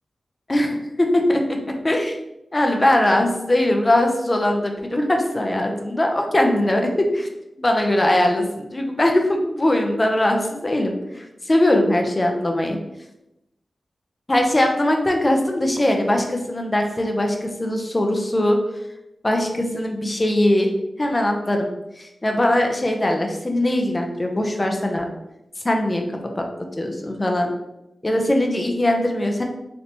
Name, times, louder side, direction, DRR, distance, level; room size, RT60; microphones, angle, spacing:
voice 1, 0.5-1.6 1.8-2.2 2.5-7.3 7.6-12.8 14.3-18.6 19.2-20.7 21.0-21.7 22.0-25.1 25.6-26.4 26.8-27.5 28.0-29.4, left 1 dB, 25° left, 3 dB, 0.4 m, -21 dB
3.2 x 2.7 x 2.7 m, 0.92 s
wide cardioid pair, 120°, 0 cm